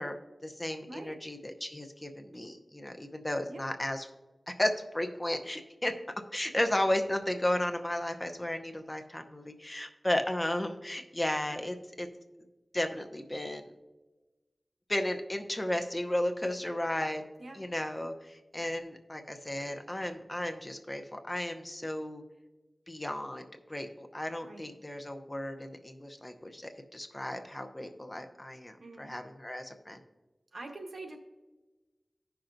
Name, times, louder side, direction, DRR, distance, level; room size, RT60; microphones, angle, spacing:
voice 1, 0.0-4.1 4.5-5.9 6.3-12.1 12.7-13.6 14.9-17.2 17.5-22.2 22.9-30.0, left 1 dB, 20° left, 5 dB, 0.7 m, -34 dB
voice 2, 0.9-1.2 3.5-3.6 17.4-17.6 24.4-24.7 28.8-29.1 30.5-31.2, right 2 dB, 85° right, 4 dB, 1.0 m, -44 dB
15.5 x 5.8 x 2.6 m, 1.2 s
wide cardioid pair, 55°, 0 cm